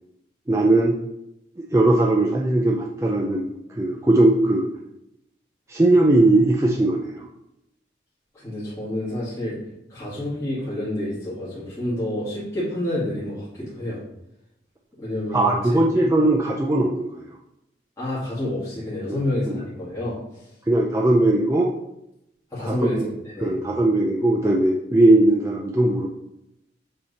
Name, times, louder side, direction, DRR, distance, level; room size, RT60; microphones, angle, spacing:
voice 1, 0.5-0.9 1.6-4.7 5.7-7.3 15.3-17.2 19.1-19.2 19.5-19.6 20.7-21.7 22.7-23.1 23.4-26.1, right 2 dB, 15° right, -1 dB, 0.4 m, -19 dB
voice 2, 8.3-9.6 9.9-14.0 15.0-15.8 18.0-20.2 22.5-23.6, left 1 dB, 15° left, -11 dB, 2.0 m, -28 dB
7.4 x 3.4 x 4.1 m, 0.86 s
head